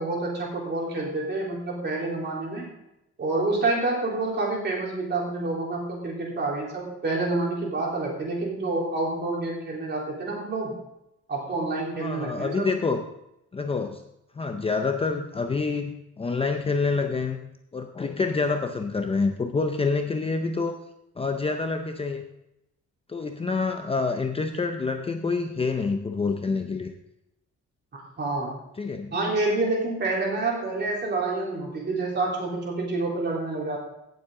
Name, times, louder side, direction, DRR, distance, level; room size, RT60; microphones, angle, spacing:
voice 1, 0.0-2.7 3.2-10.7 11.3-12.7 27.9-28.6 29.1-33.8, right 2 dB, 35° right, -3 dB, 3.6 m, -28 dB
voice 2, 11.9-13.0 13.5-14.0 14.4-17.4 17.7-20.8 21.2-22.3 23.1-26.9 28.8-29.2, left 4 dB, 20° left, 5 dB, 0.6 m, -27 dB
17.0 x 7.6 x 3.8 m, 0.86 s
wide cardioid pair, 175°, 29 cm